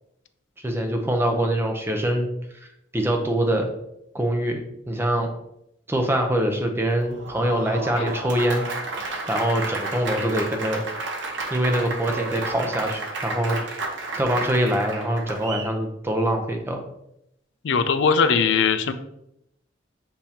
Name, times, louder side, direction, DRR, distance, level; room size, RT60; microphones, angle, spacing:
voice 1, 0.6-2.3 2.9-3.7 4.1-5.3 5.9-8.6 9.3-10.8 11.5-13.6 14.1-16.8, right 1 dB, 10° right, 4 dB, 0.5 m, -24 dB
Applause, 7.0-15.7, right 2 dB, 65° right, 0.7 m, -32 dB
voice 2, 17.6-18.9, left 5 dB, 65° left, 10 dB, 0.4 m, -20 dB
6.8 x 2.7 x 2.8 m, 0.80 s
head